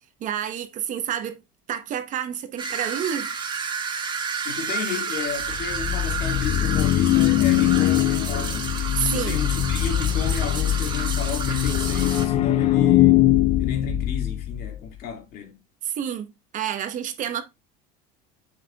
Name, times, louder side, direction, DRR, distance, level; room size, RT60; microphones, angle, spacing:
voice 1, 0.2-1.4 1.7-3.4 9.0-9.4 15.8-17.4, right 9 dB, 45° right, 1.0 m, -29 dB
sound 1, 2.6-12.3, right 5 dB, 25° right, 1.5 m, -31 dB
voice 2, 4.4-8.7 9.1-13.3 13.6-15.6, left 6 dB, 55° left, 2.2 m, -33 dB
sound 2, 5.4-14.8, left 13 dB, 35° left, 0.4 m, -22 dB
7.4 x 6.5 x 2.4 m
supercardioid pair, 120°, 19 cm